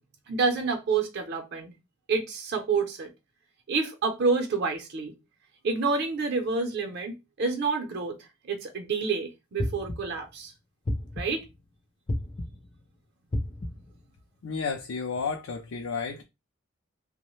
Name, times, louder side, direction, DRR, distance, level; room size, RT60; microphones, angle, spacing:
voice 1, 0.3-1.7 2.1-3.1 3.7-5.1 5.6-10.5 11.2-11.4, right 4 dB, 55° right, 0.6 m, -28 dB
sound 1, 9.6-10.2 10.9-11.5 12.1-12.7 13.3-14.0, left 1 dB, 25° left, 0.4 m, -32 dB
voice 2, 14.4-16.2, left 5 dB, 90° left, 0.4 m, -32 dB
3.0 x 2.1 x 3.0 m
head